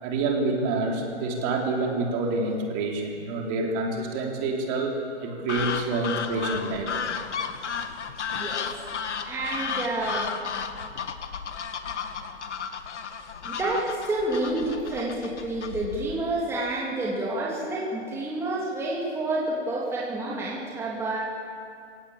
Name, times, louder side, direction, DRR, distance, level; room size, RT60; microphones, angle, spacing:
voice 1, 0.0-7.0, right 3 dB, 30° right, 0 dB, 3.6 m, -27 dB
sound 1, 5.5-16.2, left 6 dB, 80° left, 2.0 m, -33 dB
voice 2, 8.3-8.7 9.2-10.3 13.4-21.2, right 2 dB, 5° right, -5 dB, 2.9 m, -29 dB
27.5 x 17.0 x 8.7 m, 2.4 s
hypercardioid pair, 155°, 34 cm